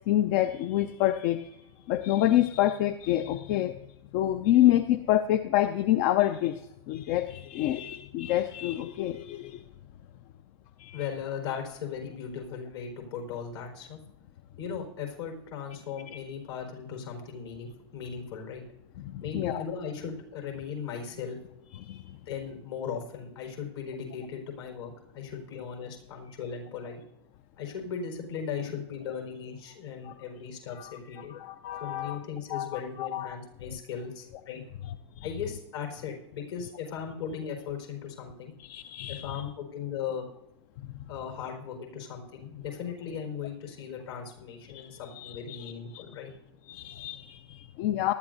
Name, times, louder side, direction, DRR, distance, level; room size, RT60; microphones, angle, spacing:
voice 1, 0.1-1.6 1.9-3.8 4.1-6.6 6.9-9.6 10.8-11.1 16.1-16.2 19.0-19.6 21.7-22.2 30.0-30.1 30.8-32.2 32.5-33.3 35.2-35.3 38.6-39.4 44.7-46.0 46.7-48.1, left 13 dB, 50° left, 11 dB, 0.6 m, -28 dB
voice 2, 10.9-14.0 14.6-18.6 19.2-21.4 22.3-27.0 27.6-31.3 31.8-34.6 35.2-38.5 39.2-40.3 41.1-46.3, left 7 dB, 70° left, 2 dB, 4.6 m, -37 dB
19.5 x 12.5 x 2.7 m, 0.84 s
hypercardioid pair, 100°, 14 cm